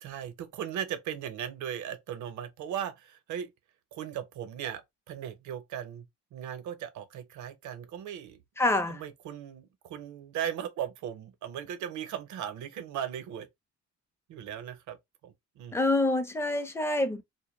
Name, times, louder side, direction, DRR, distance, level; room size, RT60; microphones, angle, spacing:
voice 1, 0.0-3.5 3.9-8.4 8.9-13.5 14.3-15.0 15.2-15.8, right 9 dB, 75° right, 0.6 m, -38 dB
voice 2, 8.6-9.0 15.7-17.2, left 2 dB, 10° left, 0.4 m, -26 dB
2.1 x 2.0 x 2.9 m
cardioid pair, 90°, 30 cm